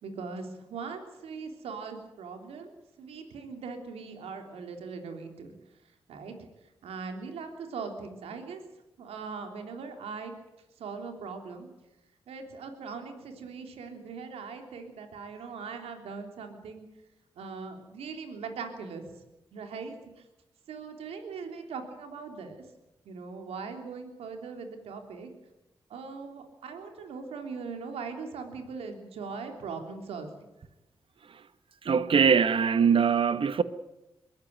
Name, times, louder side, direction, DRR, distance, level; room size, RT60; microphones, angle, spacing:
voice 1, 0.0-2.7 3.0-5.5 6.1-6.3 6.8-8.6 9.0-10.3 10.8-11.7 12.3-16.8 17.3-19.1 19.5-20.0 20.7-22.6 23.0-25.3 25.9-30.3, right 5 dB, 85° right, 3.4 m, -40 dB
voice 2, 31.8-33.6, right 6 dB, 60° right, 1.2 m, -22 dB
22.5 x 14.5 x 9.4 m
supercardioid pair, 45°, 10 cm